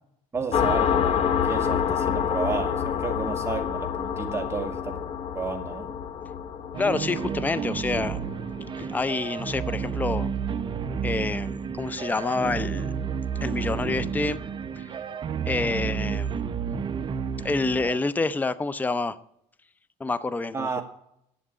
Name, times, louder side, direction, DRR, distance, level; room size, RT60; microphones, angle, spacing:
voice 1, 0.3-5.0 5.3-5.9 20.5-20.8, right 4 dB, 20° right, 3 dB, 2.0 m, -32 dB
sound 1, 0.5-9.8, left 8 dB, 45° left, 0.9 m, -28 dB
sound 2, 6.7-18.0, right 7 dB, 35° right, 0.9 m, -31 dB
voice 2, 6.8-8.2 8.7-10.3 11.0-12.9 13.4-14.4 14.8-14.9 15.4-16.5 17.4-19.2 20.0-20.8, left 3 dB, 10° left, 16 dB, 0.5 m, -28 dB
11.0 x 7.8 x 8.5 m, 0.74 s
cardioid pair, 125°, 15 cm